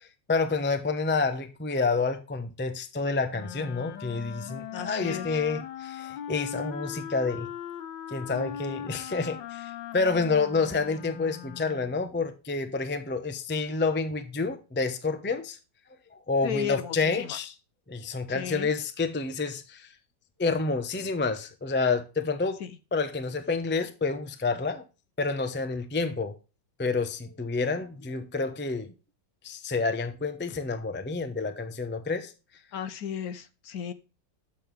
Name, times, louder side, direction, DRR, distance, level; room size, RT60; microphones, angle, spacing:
voice 1, 0.0-7.5 8.1-15.6 16.1-17.5 17.9-19.9 20.4-22.6 22.9-24.8 25.2-26.3 26.8-28.9 29.4-32.3, left 4 dB, 15° left, 0.3 m, -29 dB
Wind instrument woodwind instrument, 3.3-12.0, left 9 dB, 85° left, 1.5 m, -39 dB
voice 2, 4.7-5.4 16.4-17.4 18.3-18.7 22.6-22.8 32.7-33.9, left 8 dB, 65° left, 1.1 m, -34 dB
9.1 x 7.7 x 3.3 m
omnidirectional pair, 1.9 m